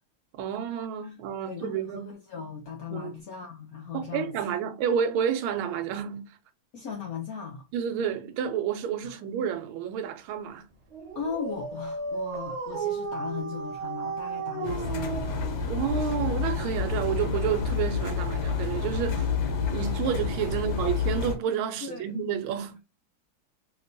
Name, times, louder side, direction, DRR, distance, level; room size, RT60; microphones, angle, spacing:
voice 1, 0.4-2.0 2.9-3.2 3.9-6.3 7.7-10.7 15.7-19.3 19.7-22.8, right 8 dB, 85° right, 1.4 m, -30 dB
voice 2, 1.4-4.5 6.7-7.7 9.0-9.2 11.1-15.7 20.5-20.6 21.8-22.2, left 6 dB, 85° left, 0.8 m, -38 dB
Dog, 10.9-16.6, right 4 dB, 55° right, 0.7 m, -34 dB
Engine, 14.6-21.4, left 5 dB, 65° left, 1.1 m, -29 dB
3.2 x 2.9 x 2.5 m
omnidirectional pair, 2.3 m